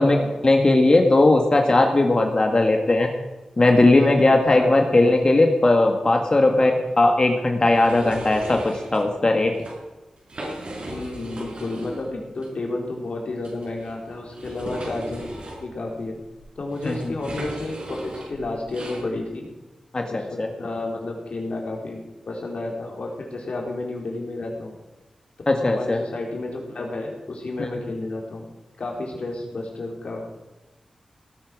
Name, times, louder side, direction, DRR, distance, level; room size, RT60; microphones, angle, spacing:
voice 1, 0.4-3.1 3.6-6.7 7.0-9.5 16.8-17.1 19.9-20.5 25.5-26.0 27.6-27.7, left 2 dB, 40° left, 3 dB, 1.8 m, -18 dB
voice 2, 3.8-5.1 6.4-6.8 10.9-15.3 15.6-16.2 16.6-19.5 20.1-24.7 25.6-28.5 28.8-30.2, left 2 dB, 65° left, 0 dB, 4.1 m, -31 dB
sound 1, 7.6-9.0 9.5-9.7 10.2-12.1 12.4-12.5 13.4-19.0, right 1 dB, 65° right, 6.4 m, -37 dB
18.0 x 8.9 x 6.2 m, 1.1 s
cardioid pair, 60°, 2 cm